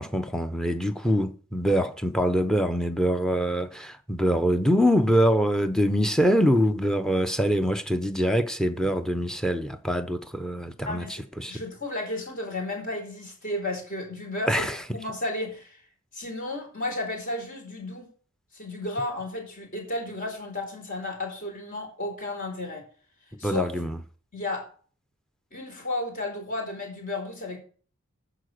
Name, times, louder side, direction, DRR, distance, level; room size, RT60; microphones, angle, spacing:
voice 1, 0.0-11.0 11.4-11.6 14.5-14.8 23.4-24.0, equal, 5° left, 0.8 m, -24 dB
voice 2, 10.8-11.2 11.5-14.7 14.9-15.8 16.1-18.1 18.5-22.8 23.4-23.8 24.3-24.7 25.5-27.6, left 2 dB, 40° left, 4.5 m, -33 dB
14.5 x 5.0 x 6.6 m
head